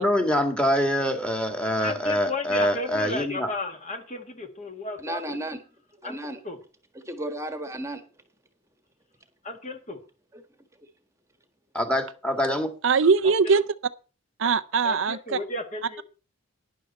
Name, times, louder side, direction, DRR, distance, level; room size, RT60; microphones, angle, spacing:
voice 1, 0.0-3.5 11.7-12.7, equal, 5° left, 1.9 m, -25 dB
voice 2, 1.8-5.4 6.0-6.2 6.4-6.6 9.4-10.0 13.2-13.5 14.8-16.0, left 2 dB, 35° left, 1.9 m, -34 dB
voice 3, 5.0-5.6 6.0-6.4 6.9-8.0 10.3-10.4, right 1 dB, 15° right, 1.5 m, -33 dB
voice 4, 12.8-13.6 14.4-15.4, right 5 dB, 60° right, 0.5 m, -21 dB
11.5 x 10.5 x 4.2 m
head